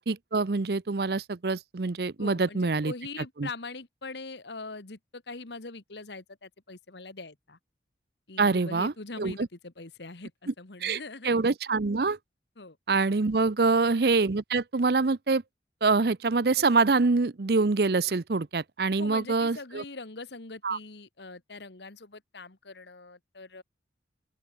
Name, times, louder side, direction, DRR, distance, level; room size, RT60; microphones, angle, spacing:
voice 1, 0.0-2.9 3.4-3.5 8.4-8.9 9.2-9.3 10.8-11.0 11.2-12.2 12.9-15.4 15.8-19.8 20.6-20.8, right 3 dB, 60° right, 0.6 m, -25 dB
voice 2, 2.2-7.6 8.3-11.3 12.6-12.8 13.6-14.0 19.0-23.6, left 3 dB, 70° left, 1.6 m, -42 dB
open air
head